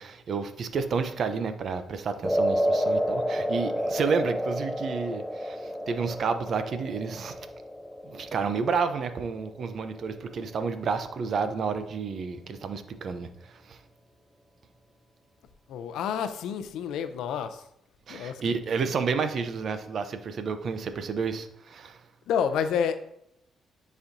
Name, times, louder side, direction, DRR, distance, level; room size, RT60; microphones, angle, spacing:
voice 1, 0.0-7.4 8.0-13.8 18.1-22.0, right 5 dB, 55° right, 10 dB, 0.6 m, -30 dB
sound 1, 2.2-10.6, equal, 5° left, 0.4 m, -30 dB
voice 2, 15.7-17.6 18.1-18.4 22.3-23.0, left 7 dB, 85° left, 10 dB, 0.5 m, -29 dB
9.7 x 4.2 x 2.6 m, 0.79 s
cardioid pair, 90°, 0 cm